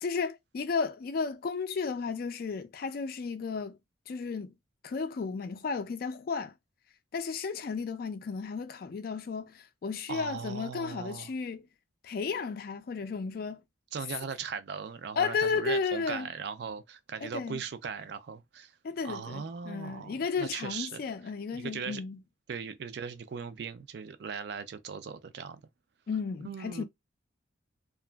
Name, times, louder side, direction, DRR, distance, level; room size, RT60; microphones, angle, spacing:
voice 1, 0.0-3.8 4.1-4.6 4.8-6.5 7.1-11.7 12.0-13.6 15.2-16.3 17.2-17.6 18.8-22.2 26.1-26.8, left 5 dB, 50° left, 0.3 m, -33 dB
voice 2, 10.1-11.3 13.9-18.8 19.0-21.0 21.5-22.0 22.5-25.6 26.4-26.8, right 6 dB, 55° right, 0.3 m, -39 dB
2.8 x 2.4 x 2.2 m
head